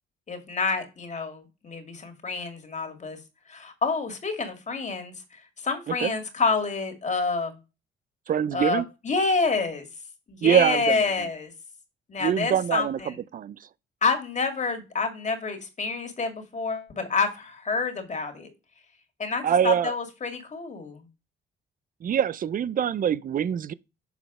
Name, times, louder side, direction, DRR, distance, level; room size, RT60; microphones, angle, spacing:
voice 1, 0.3-3.2 3.5-7.5 8.5-9.9 10.3-11.5 12.1-13.2 14.0-18.5 19.2-21.0, left 4 dB, 35° left, 2.1 m, -28 dB
voice 2, 8.3-8.8 10.4-11.0 12.2-13.6 19.4-19.9 22.0-23.7, right 9 dB, 45° right, 0.4 m, -24 dB
7.0 x 4.0 x 4.8 m
cardioid pair, 90°, 20 cm